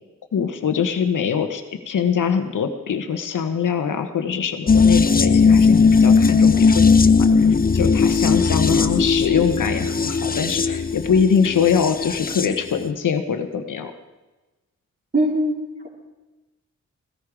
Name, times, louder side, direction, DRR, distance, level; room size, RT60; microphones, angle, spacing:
voice 1, 0.3-7.4 7.7-13.9, left 7 dB, 85° left, 7 dB, 1.2 m, -23 dB
sound 1, 4.7-12.6 12.8-12.9, left 5 dB, 30° left, 0.7 m, -17 dB
voice 2, 15.1-15.9, right 1 dB, 35° right, -8 dB, 4.0 m, -22 dB
16.5 x 14.0 x 4.9 m, 1.1 s
cardioid pair, 70°, 31 cm